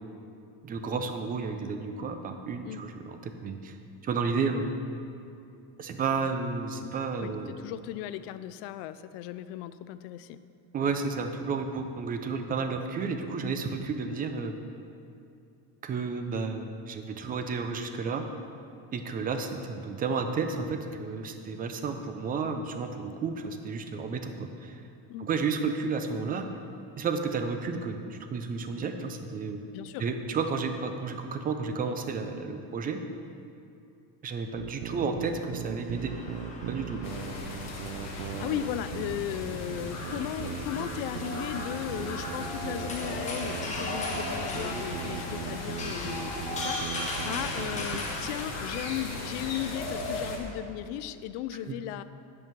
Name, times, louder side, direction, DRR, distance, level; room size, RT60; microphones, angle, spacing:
voice 1, 0.6-3.8 4.0-4.7 5.8-7.6 10.7-14.6 15.8-18.2 18.9-24.8 25.2-26.5 27.0-29.6 30.0-33.0 34.2-36.1 36.7-37.0 51.7-51.8, right 4 dB, 20° right, 6 dB, 0.3 m, -32 dB
voice 2, 7.2-10.4 25.1-25.3 29.7-30.0 38.1-52.0, left 12 dB, 75° left, 13 dB, 0.5 m, -36 dB
sound 1, 34.6-48.1, right 11 dB, 75° right, 0.6 m, -39 dB
sound 2, 35.2-48.4, left 2 dB, 15° left, 1.1 m, -39 dB
sound 3, 37.0-50.4, left 2 dB, 35° left, 1.4 m, -37 dB
9.2 x 5.4 x 6.0 m, 2.6 s
cardioid pair, 145°, 46 cm